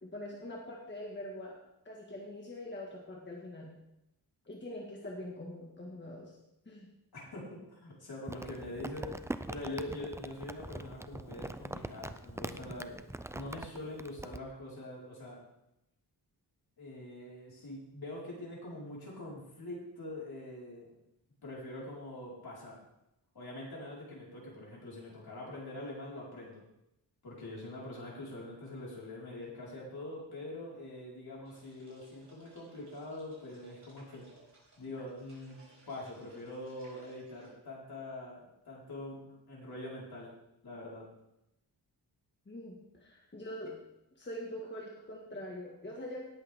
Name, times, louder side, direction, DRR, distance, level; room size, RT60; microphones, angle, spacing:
voice 1, 0.0-1.6 1.9-3.7 4.5-6.4 6.7-6.9 42.5-43.8 44.2-46.2, left 1 dB, 25° left, -2 dB, 1.9 m, -43 dB
voice 2, 7.1-13.0 13.3-15.4 16.8-21.0 21.4-22.8 23.3-26.6 27.2-34.2 34.8-35.6 35.9-40.3 40.6-41.0, left 1 dB, 65° left, -5 dB, 4.9 m, -44 dB
Crumpling crinkling, 8.3-14.4, right 1 dB, 5° right, 0.4 m, -42 dB
sound 1, 31.4-37.5, right 2 dB, 45° right, 5.1 m, -62 dB
18.0 x 8.3 x 3.7 m, 0.85 s
wide cardioid pair, 120°, 40 cm